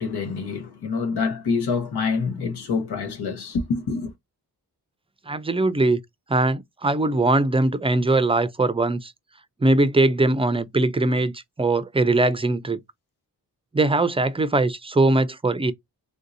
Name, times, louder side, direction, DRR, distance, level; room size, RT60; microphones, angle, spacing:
voice 1, 0.0-4.1, left 4 dB, 90° left, 1.1 m, -26 dB
voice 2, 5.3-6.0 6.3-9.1 9.6-12.8 13.7-15.7, right 2 dB, 15° right, 0.4 m, -21 dB
3.6 x 2.6 x 2.6 m
cardioid pair, 75°, 38 cm